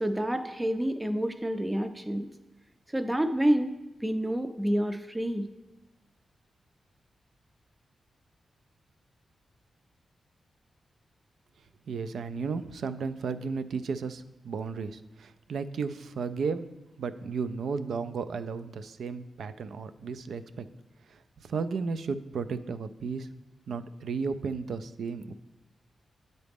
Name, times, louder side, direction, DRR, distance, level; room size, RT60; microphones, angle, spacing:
voice 1, 0.0-2.3 2.9-3.7 4.0-5.5, right 1 dB, 10° right, 9 dB, 0.4 m, -28 dB
voice 2, 11.9-16.7 17.0-20.7 21.1-23.3 23.7-25.3, right 5 dB, 80° right, 12 dB, 0.3 m, -34 dB
9.1 x 3.9 x 3.5 m, 0.98 s
wide cardioid pair, 110°, 0 cm